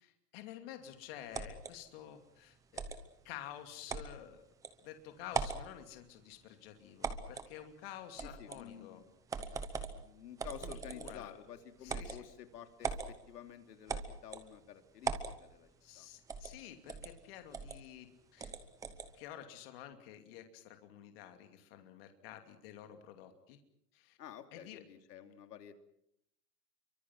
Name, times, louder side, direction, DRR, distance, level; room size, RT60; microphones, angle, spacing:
voice 1, 0.0-3.0 3.2-4.4 4.8-9.0 9.4-9.6 10.6-11.4 11.8-12.3 15.8-18.5 19.1-23.6 23.9-24.2 24.5-24.8, left 11 dB, 35° left, 6 dB, 2.8 m, -50 dB
sound 1, 1.3-1.7 2.8-3.0 3.9-4.1 4.6-4.7 5.3-5.7 7.0-7.5 8.2-8.6 9.3-10.0 10.4-11.3 11.9-12.2 12.8-13.1 13.9-14.5 15.0-15.4 16.3-16.6 16.9-17.1 17.5-17.8 18.4-19.1, right 5 dB, 5° right, 0.9 m, -39 dB
voice 2, 8.4-9.1 9.9-15.7 15.9-16.1 24.2-25.7, left 9 dB, 80° left, 7 dB, 3.1 m, -51 dB
28.0 x 24.5 x 6.1 m, 0.75 s
supercardioid pair, 170°, 47 cm